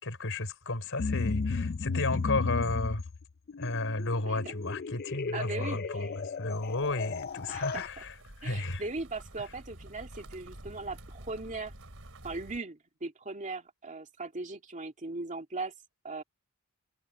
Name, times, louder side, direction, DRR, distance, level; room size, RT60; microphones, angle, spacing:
voice 1, 0.0-3.0 3.6-8.1 8.4-8.8, left 2 dB, 60° left, 4.7 m, -33 dB
sound 1, 1.0-7.9, left 4 dB, 45° left, 0.5 m, -34 dB
voice 2, 5.3-6.1 7.5-8.0 8.4-11.7 12.2-15.7 16.0-16.2, right 3 dB, 35° right, 2.4 m, -39 dB
sound 2, 6.5-12.6, right 1 dB, 60° right, 4.9 m, -50 dB
head